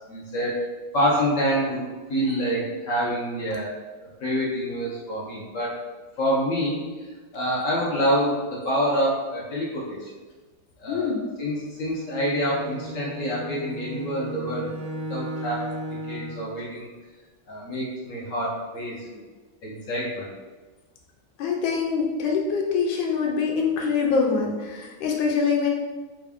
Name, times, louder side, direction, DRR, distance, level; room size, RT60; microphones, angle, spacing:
voice 1, 0.1-0.6 0.9-1.8 2.1-3.7 4.0-5.7 6.2-7.1 7.3-10.1 10.8-11.1 11.4-14.7 15.1-15.7 16.1-16.9 17.5-19.1 19.6-20.3, equal, 65° left, -6 dB, 0.8 m, -26 dB
voice 2, 10.9-11.2 21.4-25.7, left 5 dB, 80° left, 0 dB, 1.3 m, -24 dB
Bowed string instrument, 11.8-16.5, equal, 65° right, 0.9 m, -36 dB
3.4 x 2.5 x 3.4 m, 1.3 s
omnidirectional pair, 2.1 m